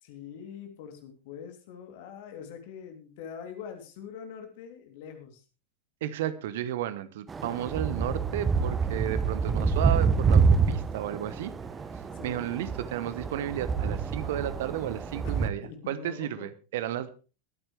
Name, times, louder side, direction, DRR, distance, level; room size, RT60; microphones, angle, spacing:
voice 1, 0.0-5.4 12.1-12.5 15.2-16.4, left 7 dB, 50° left, 5 dB, 3.1 m, -44 dB
voice 2, 6.0-11.5 12.2-17.1, right 11 dB, 55° right, 15 dB, 1.0 m, -33 dB
sound 1, 7.3-15.5, right 5 dB, 15° right, 1.0 m, -27 dB
22.5 x 8.9 x 3.3 m, 0.34 s
figure-of-eight pair, 90°, 0 cm